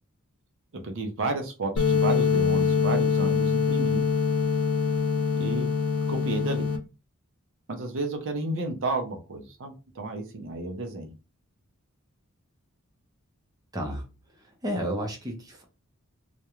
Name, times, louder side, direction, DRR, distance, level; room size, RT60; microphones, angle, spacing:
voice 1, 0.7-4.1 5.4-5.7 6.1-6.7 7.7-11.1, right 2 dB, 60° right, 0.6 m, -32 dB
sound 1, 1.8-6.8, left 6 dB, 85° left, 0.5 m, -24 dB
voice 2, 13.7-14.1 14.6-15.6, equal, 15° right, 0.5 m, -31 dB
2.4 x 2.1 x 2.9 m
head